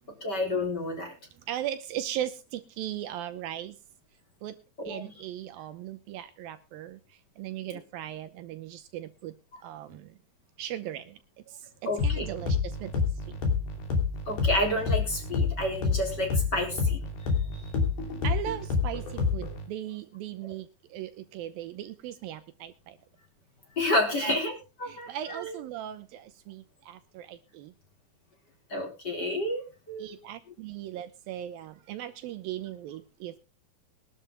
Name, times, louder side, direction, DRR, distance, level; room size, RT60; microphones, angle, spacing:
voice 1, 0.2-1.1 4.8-5.1 9.5-9.6 11.9-12.3 14.3-17.0 17.5-17.6 23.8-24.5 24.8-25.6 28.7-30.2, left 1 dB, 25° left, 2 dB, 4.4 m, -30 dB
voice 2, 1.5-3.8 4.4-4.6 4.9-9.3 9.6-10.2 10.6-11.2 11.5-12.9 13.3-13.4 17.4-17.5 18.2-23.0 24.2-24.4 24.9-27.7 30.0-33.4, right 11 dB, 75° right, 11 dB, 2.5 m, -38 dB
sound 1, 12.0-19.7, left 5 dB, 80° left, 4.8 m, -28 dB
22.5 x 12.0 x 2.2 m, 0.29 s
omnidirectional pair, 4.4 m